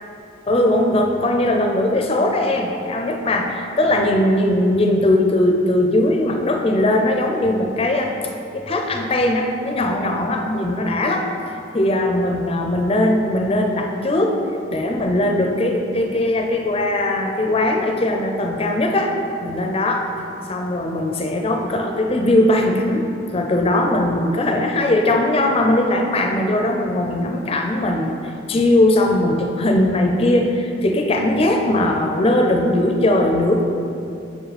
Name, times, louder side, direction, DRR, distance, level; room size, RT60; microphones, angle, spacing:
voice 1, 0.5-8.1 8.5-11.3 11.7-14.4 14.7-19.1 19.4-23.1 23.3-33.6, left 1 dB, 30° left, 3 dB, 0.4 m, -19 dB
5.7 x 4.9 x 5.0 m, 2.6 s
head